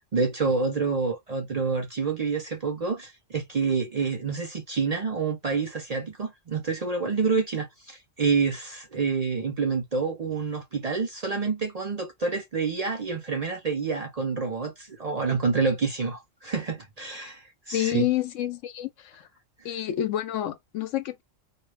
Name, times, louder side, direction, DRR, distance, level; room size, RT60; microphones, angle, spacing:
voice 1, 0.0-18.1, right 4 dB, 50° right, 0.5 m, -28 dB
voice 2, 17.7-19.3 19.6-21.2, left 12 dB, 75° left, 1.0 m, -28 dB
2.4 x 2.2 x 3.2 m
omnidirectional pair, 1.3 m